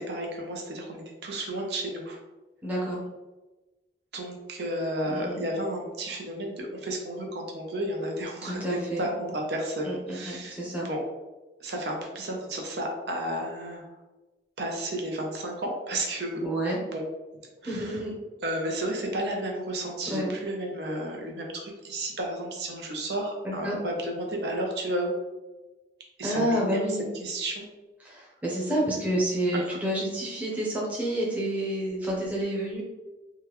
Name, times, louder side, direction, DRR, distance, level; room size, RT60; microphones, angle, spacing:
voice 1, 0.0-2.2 4.1-10.6 10.8-11.0 11.6-13.8 14.6-16.5 16.9-17.0 17.6-18.0 18.4-25.1 26.2-26.8 27.2-27.7 29.5-29.8, right 1 dB, 70° right, 0 dB, 0.6 m, -32 dB
voice 2, 2.6-3.0 5.0-5.4 8.4-9.1 9.8-9.9 10.2-10.9 16.4-16.8 17.7-18.1 20.1-20.3 23.4-23.8 26.2-27.1 28.0-32.8, right 1 dB, 10° right, -5 dB, 0.8 m, -29 dB
3.6 x 2.2 x 3.0 m, 1.1 s
head